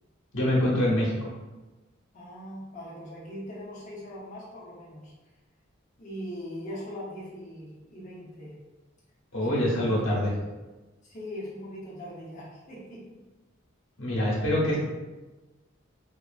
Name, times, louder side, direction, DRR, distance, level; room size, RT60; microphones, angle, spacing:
voice 1, 0.3-1.3 9.3-10.3 14.0-14.8, left 1 dB, 85° left, -5 dB, 0.9 m, -25 dB
voice 2, 2.1-5.1 6.0-8.5 9.4-10.2 11.0-13.0, left 1 dB, 40° left, -8 dB, 0.7 m, -40 dB
2.8 x 2.4 x 2.3 m, 1.2 s
head